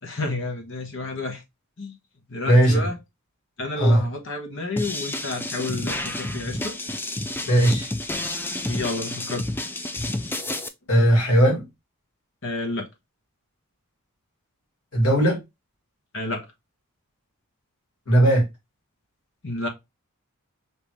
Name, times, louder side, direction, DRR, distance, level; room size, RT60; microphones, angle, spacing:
voice 1, 0.0-1.4 1.8-2.0 2.3-3.0 3.6-6.8 8.7-9.5 12.4-12.9 16.1-16.5 19.4-19.7, left 2 dB, 60° left, 1.2 m, -30 dB
voice 2, 2.5-2.9 3.8-4.0 7.5-7.9 10.9-11.6 14.9-15.4 18.1-18.4, right 1 dB, 90° left, 2.3 m, -18 dB
sound 1, 4.8-10.7, left 2 dB, 10° left, 0.3 m, -30 dB
5.4 x 2.9 x 3.1 m
head